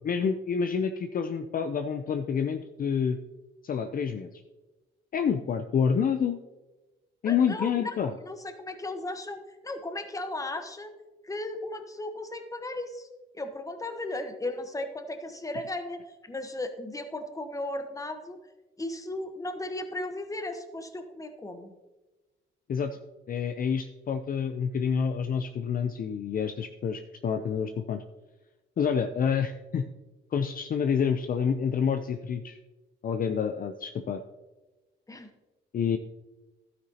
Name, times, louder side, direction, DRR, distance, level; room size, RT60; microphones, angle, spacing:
voice 1, 0.0-3.2 3.6-4.4 5.1-6.4 7.2-8.1 22.7-23.0 23.3-28.0 28.8-29.8 30.3-32.6 33.0-34.2 35.7-36.0, left 7 dB, 45° left, 8 dB, 0.5 m, -28 dB
voice 2, 7.3-10.9 11.2-13.1 13.3-18.4 18.8-21.7 35.1-35.3, left 2 dB, 15° left, 7 dB, 1.1 m, -36 dB
12.0 x 9.3 x 2.9 m, 1.2 s
cardioid pair, 90°, 20 cm